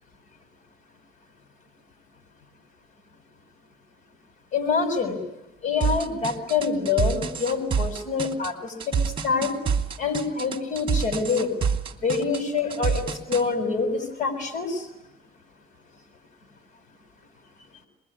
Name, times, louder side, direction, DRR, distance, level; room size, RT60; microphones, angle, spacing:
voice 1, 4.5-5.2 5.6-8.7 9.2-9.5 10.0-11.5 12.0-13.0 13.3-14.8, left 5 dB, 45° left, 7 dB, 6.3 m, -25 dB
sound 1, 5.8-13.4, right 6 dB, 30° right, 2.8 m, -27 dB
26.5 x 22.0 x 9.9 m, 0.92 s
cardioid pair, 110°, 17 cm